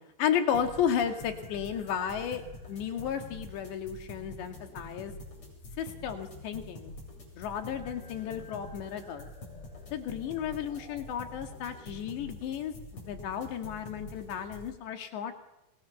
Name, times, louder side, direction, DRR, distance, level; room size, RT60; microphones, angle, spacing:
voice 1, 0.2-2.4 2.7-5.1 5.8-6.9 7.4-9.3 9.9-15.3, left 8 dB, 70° left, 6 dB, 4.2 m, -33 dB
sound 1, 0.5-14.7, left 2 dB, 35° left, 8.9 m, -46 dB
28.0 x 27.5 x 7.1 m, 0.92 s
omnidirectional pair, 5.5 m